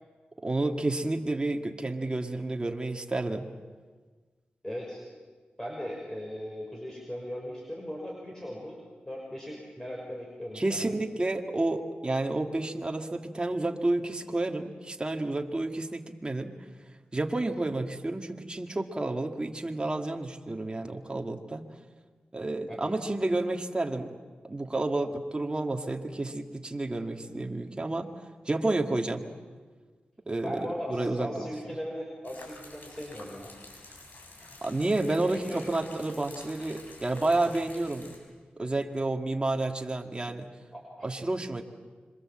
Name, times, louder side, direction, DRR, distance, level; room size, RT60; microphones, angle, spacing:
voice 1, 0.4-3.5 10.5-16.5 17.1-21.6 22.3-24.1 24.4-28.1 28.5-29.2 30.3-31.5 34.6-38.1 38.6-40.5 41.0-41.6, right 2 dB, 25° right, 3 dB, 2.1 m, -30 dB
voice 2, 4.6-5.1 5.6-8.8 9.1-11.0 22.7-22.9 30.4-33.5 35.4-35.6 40.7-41.1, equal, 15° left, -1 dB, 6.1 m, -38 dB
sound 1, 32.2-38.2, left 2 dB, 60° left, 7.0 m, -49 dB
26.5 x 24.0 x 7.7 m, 1.4 s
cardioid pair, 60°, 3 cm